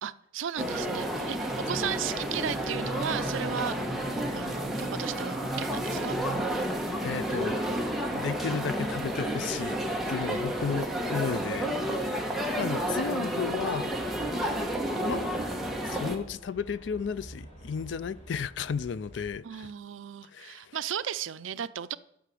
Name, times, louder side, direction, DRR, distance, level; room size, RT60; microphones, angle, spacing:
voice 1, 0.0-3.8 4.3-6.2 10.2-10.5 19.4-22.0, right 8 dB, 80° right, 0.5 m, -35 dB
sound 1, 0.6-16.2, equal, ahead, 1.3 m, -31 dB
sound 2, 1.5-6.5, right 2 dB, 15° right, 0.6 m, -41 dB
voice 2, 7.0-7.6 8.1-9.8 10.1-12.2 12.4-14.0 15.0-15.3 15.8-19.7 20.3-20.8, left 6 dB, 65° left, 0.4 m, -34 dB
sound 3, 13.9-19.3, equal, 35° left, 4.0 m, -48 dB
11.5 x 5.8 x 7.7 m
head